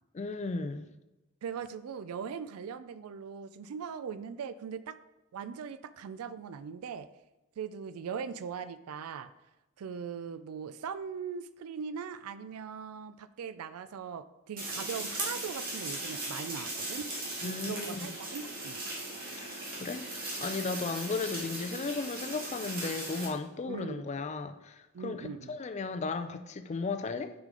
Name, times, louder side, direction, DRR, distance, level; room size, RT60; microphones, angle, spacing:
voice 1, 0.1-0.9 17.4-18.1 19.3-27.3, left 4 dB, 30° left, 10 dB, 0.4 m, -35 dB
voice 2, 1.4-5.0 5.3-7.1 7.6-9.3 9.8-17.1 17.4-18.8 23.7-24.0 24.9-25.6, right 6 dB, 85° right, 14 dB, 0.4 m, -40 dB
sound 1, 14.6-23.3, right 2 dB, 40° right, 1.9 m, -38 dB
6.3 x 5.0 x 3.8 m, 1.0 s
head